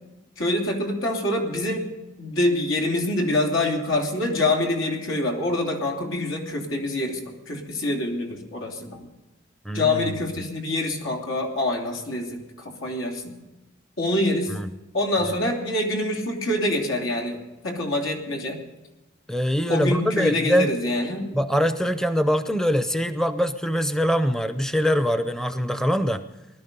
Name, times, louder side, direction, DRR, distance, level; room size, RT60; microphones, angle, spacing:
voice 1, 0.4-1.9 2.2-7.2 7.5-9.1 9.7-13.4 14.0-14.5 14.9-18.6 19.7-21.4, left 1 dB, 85° left, 2 dB, 3.1 m, -25 dB
voice 2, 9.6-10.1 14.5-14.7 19.3-20.7 21.3-26.2, equal, 5° left, 10 dB, 0.6 m, -23 dB
20.0 x 12.5 x 5.4 m, 1.1 s
head